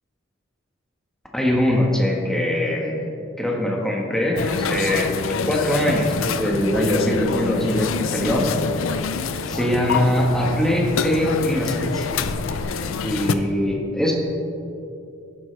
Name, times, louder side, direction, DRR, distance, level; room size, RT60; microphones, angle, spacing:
voice 1, 1.3-3.1 3.4-5.1 5.4-8.5 9.5-12.1 13.0-14.1, left 1 dB, 5° left, -2 dB, 1.3 m, -22 dB
sound 1, 4.4-13.3, left 5 dB, 90° left, 0.5 m, -26 dB
12.0 x 9.9 x 3.3 m, 2.7 s
head